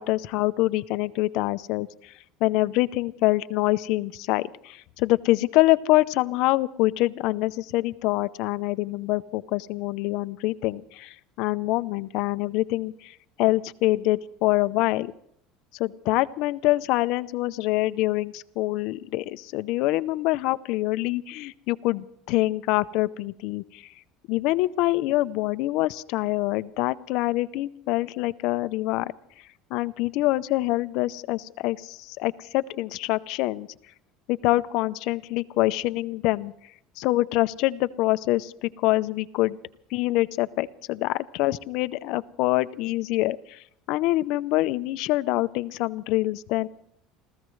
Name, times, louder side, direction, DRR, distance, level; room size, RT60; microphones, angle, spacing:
voice 1, 0.0-2.1 2.4-15.1 15.8-23.9 24.3-29.1 29.7-33.7 34.3-36.5 37.0-39.6 39.9-46.7, left 18 dB, 70° left, 14 dB, 0.6 m, -25 dB
29.0 x 15.0 x 3.2 m, 0.71 s
cardioid pair, 130°, 0 cm